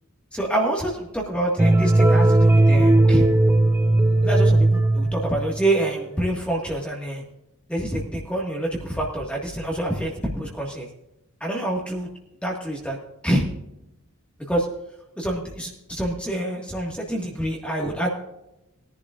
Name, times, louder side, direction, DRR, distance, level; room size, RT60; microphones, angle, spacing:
voice 1, 0.3-3.3 4.2-7.2 7.7-10.9 11.4-12.1 12.4-13.0 13.2-13.4 14.5-14.7 15.2-18.1, right 1 dB, 5° left, -1 dB, 1.7 m, -26 dB
sound 1, 1.6-5.7, right 2 dB, 10° right, 0.5 m, -17 dB
20.5 x 11.0 x 2.5 m, 0.89 s
head